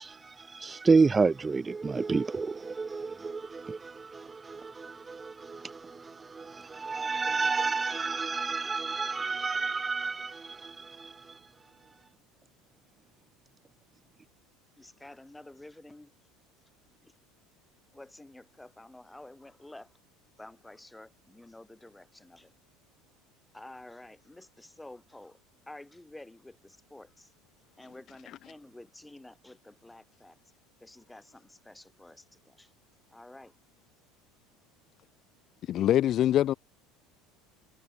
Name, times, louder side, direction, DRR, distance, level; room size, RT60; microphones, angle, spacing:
voice 1, 0.0-11.4, right 4 dB, 20° right, 0.5 m, -30 dB
voice 2, 14.8-16.1 17.0-17.1 17.9-19.9 20.4-22.5 23.5-25.4 25.7-27.3 27.8-30.4 30.8-32.7 33.1-33.5, left 1 dB, 5° left, 5.2 m, -50 dB
voice 3, 35.7-36.5, left 12 dB, 45° left, 1.0 m, -24 dB
supercardioid pair, 115°, 0 cm